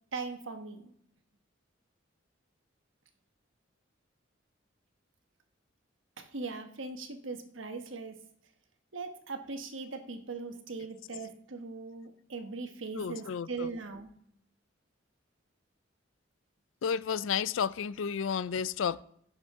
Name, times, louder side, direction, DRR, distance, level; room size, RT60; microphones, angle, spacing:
voice 1, 0.1-0.9 6.2-8.1 8.9-14.1, right 3 dB, 85° right, 1.2 m, -40 dB
voice 2, 13.0-13.7 16.8-19.0, left 7 dB, 85° left, 0.4 m, -32 dB
16.0 x 6.4 x 3.7 m
head